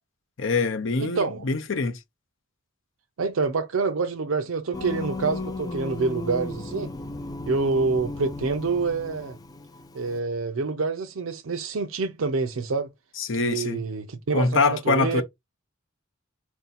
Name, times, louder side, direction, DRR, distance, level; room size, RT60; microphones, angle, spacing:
voice 1, 0.4-2.0 13.2-13.8 14.3-15.2, left 4 dB, 65° left, 0.6 m, -24 dB
voice 2, 1.0-1.4 3.2-6.9 7.5-9.4 9.9-12.9 13.4-15.2, right 4 dB, 85° right, 0.6 m, -27 dB
Singing, 4.7-10.2, left 2 dB, 20° left, 0.4 m, -35 dB
4.4 x 2.7 x 4.1 m
head